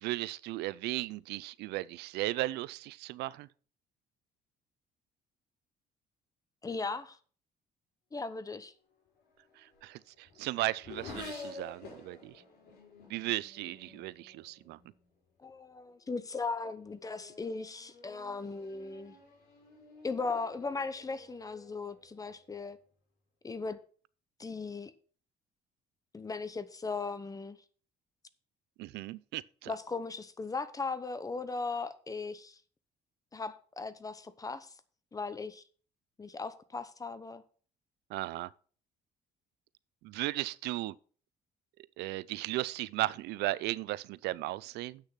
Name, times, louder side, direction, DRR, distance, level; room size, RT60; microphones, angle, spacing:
voice 1, 0.0-3.5 9.8-12.3 13.1-14.8 28.8-29.7 38.1-38.5 40.0-40.9 42.0-45.0, right 18 dB, 80° right, 0.4 m, -36 dB
voice 2, 6.6-7.2 8.1-8.7 15.4-19.2 20.0-22.8 23.4-23.8 24.4-24.9 26.1-27.6 29.7-32.6 33.3-34.7 35.1-35.6 36.2-37.4, left 4 dB, 20° left, 0.8 m, -38 dB
Race car auto racing / Accelerating revving vroom, 9.2-15.1 15.9-16.2 16.7-22.6, left 3 dB, 70° left, 5.0 m, -51 dB
8.3 x 6.5 x 5.8 m
cardioid pair, 110°, 17 cm